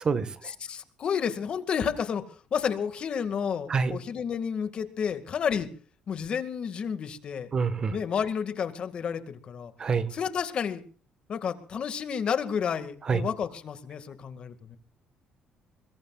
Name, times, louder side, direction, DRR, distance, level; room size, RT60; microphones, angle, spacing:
voice 1, 0.4-2.2 2.5-5.7 6.1-7.5 7.9-9.7 10.1-10.8 11.3-14.8, left 7 dB, 50° left, 10 dB, 2.1 m, -31 dB
voice 2, 7.5-7.9 9.8-10.1 13.1-13.2, right 5 dB, 35° right, 12 dB, 1.6 m, -25 dB
25.0 x 22.0 x 2.5 m, 0.42 s
cardioid pair, 110°, 2 cm